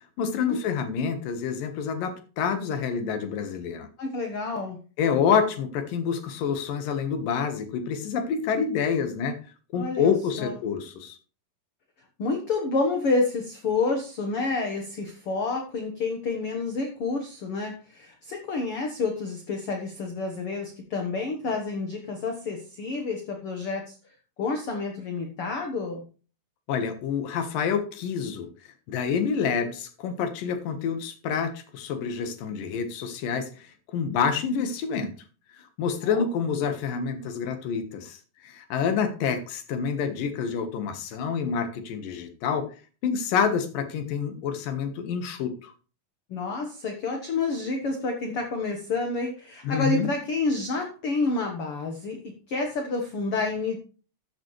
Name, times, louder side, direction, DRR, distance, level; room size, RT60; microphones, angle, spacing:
voice 1, 0.2-3.9 5.0-9.4 9.7-11.2 26.7-28.5 28.9-33.7 33.9-35.1 35.8-42.7 43.0-45.7 49.6-50.1, left 6 dB, 75° left, 8 dB, 3.0 m, -27 dB
voice 2, 4.0-4.8 9.7-10.1 10.4-10.5 12.2-24.0 24.4-26.0 36.0-36.2 46.3-53.8, left 3 dB, 55° left, 3 dB, 1.6 m, -29 dB
14.0 x 7.1 x 3.2 m, 0.36 s
omnidirectional pair, 4.0 m